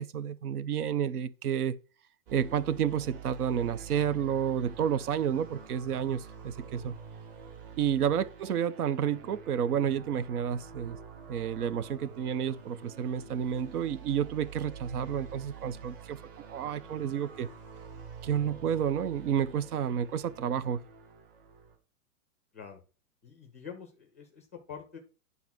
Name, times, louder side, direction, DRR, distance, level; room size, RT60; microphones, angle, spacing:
voice 1, 0.0-1.8 2.3-6.9 7.8-11.0 11.3-17.5 18.2-20.8, right 8 dB, 85° right, 0.9 m, -30 dB
sound 1, 2.3-21.7, right 6 dB, 35° right, 2.4 m, -47 dB
voice 2, 23.2-25.0, left 7 dB, 10° left, 0.4 m, -46 dB
9.8 x 4.0 x 6.0 m
supercardioid pair, 180°, 44 cm